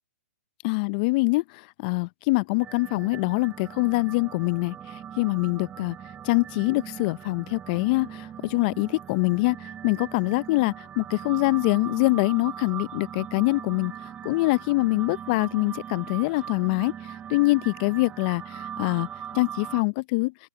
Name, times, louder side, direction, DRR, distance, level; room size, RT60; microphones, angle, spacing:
voice 1, 0.6-1.4 1.8-4.7 5.2-5.9 6.2-9.6 9.8-13.9 14.2-16.9 17.3-18.4 18.8-19.1 19.3-20.3, left 25 dB, 35° left, 0.6 m, -24 dB
sound 1, 2.6-19.8, right 9 dB, 15° right, 6.5 m, -40 dB
open air
hypercardioid pair, 140°, 8 cm